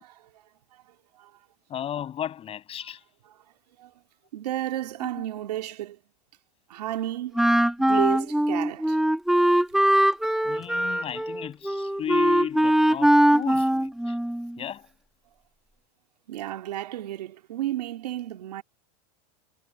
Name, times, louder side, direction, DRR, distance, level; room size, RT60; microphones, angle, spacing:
voice 1, 1.7-3.0 5.0-5.2 10.4-14.2 14.6-14.9, left 10 dB, 30° left, 6.7 m, -34 dB
voice 2, 4.3-6.0 6.7-7.4 7.8-9.0 16.3-18.6, right 13 dB, 85° right, 2.3 m, -32 dB
Wind instrument woodwind instrument, 7.3-14.6, right 1 dB, ahead, 1.8 m, -21 dB
supercardioid pair, 125°, 20 cm